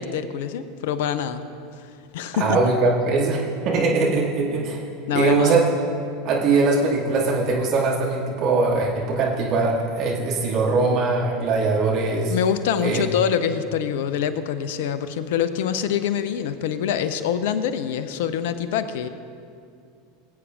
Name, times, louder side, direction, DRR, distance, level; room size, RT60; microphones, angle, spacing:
voice 1, 0.0-1.5 2.1-2.6 5.1-5.5 12.3-19.1, left 8 dB, 65° left, 12 dB, 0.5 m, -25 dB
voice 2, 2.3-4.8 5.1-5.6 6.2-12.3 12.8-13.0, right 3 dB, 50° right, -3 dB, 2.2 m, -21 dB
20.5 x 8.1 x 2.5 m, 2.4 s
hypercardioid pair, 80°, 0 cm